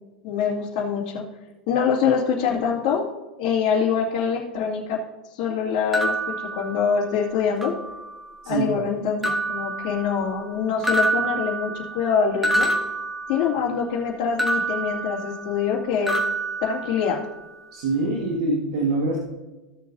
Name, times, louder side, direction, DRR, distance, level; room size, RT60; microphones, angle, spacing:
voice 1, 0.2-1.2 1.7-3.0 3.4-5.0 5.3-7.7 8.5-12.7 13.3-16.2 16.6-17.2, left 6 dB, 55° left, -7 dB, 2.5 m, -24 dB
sound 1, 5.9-7.2 7.6-8.4 9.2-10.5 10.8-13.8 14.4-15.8 16.1-17.4, right 2 dB, 5° right, 1.8 m, -27 dB
voice 2, 8.4-8.8 17.7-19.2, right 2 dB, 70° right, 0 dB, 1.7 m, -24 dB
15.5 x 6.8 x 2.7 m, 1.2 s
hypercardioid pair, 100°, 4 cm